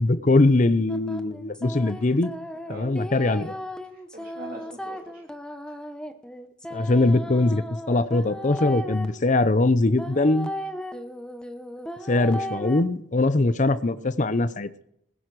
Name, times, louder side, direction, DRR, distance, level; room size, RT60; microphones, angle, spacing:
voice 1, 0.0-2.3 2.7-3.5 6.7-10.5 12.1-14.7, left 2 dB, 35° left, 14 dB, 0.7 m, -22 dB
sound 1, 0.9-9.0 10.0-12.8, equal, 5° left, 0.8 m, -36 dB
voice 2, 0.9-1.2 1.9-2.2 2.6-3.0 3.8-5.3 5.7-5.8, right 1 dB, 45° right, 0 dB, 3.0 m, -44 dB
20.5 x 11.0 x 4.7 m, 0.73 s
head